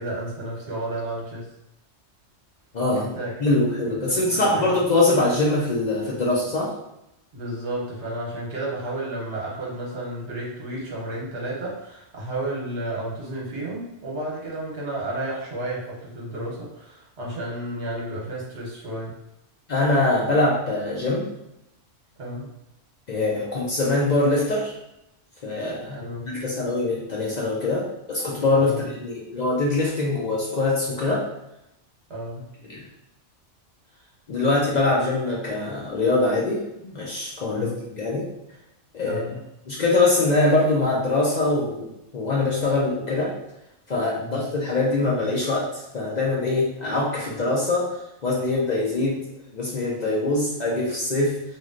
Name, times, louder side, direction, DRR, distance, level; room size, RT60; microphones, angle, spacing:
voice 1, 0.0-1.4 2.9-3.3 4.1-4.6 7.3-19.1 22.2-22.5 25.9-26.4 28.6-28.8 32.1-32.4 37.5-37.7 39.0-39.4 44.2-44.4, right 1 dB, 65° right, -4 dB, 1.2 m, -32 dB
voice 2, 2.7-3.1 3.4-6.7 19.7-21.3 23.1-24.7 25.4-26.0 26.2-31.3 32.6-32.8 34.3-36.6 36.9-38.2 38.9-39.2 39.7-43.3 43.9-49.2 49.5-51.4, left 2 dB, 55° left, -4 dB, 0.5 m, -23 dB
3.1 x 2.5 x 2.4 m, 0.86 s
omnidirectional pair, 1.3 m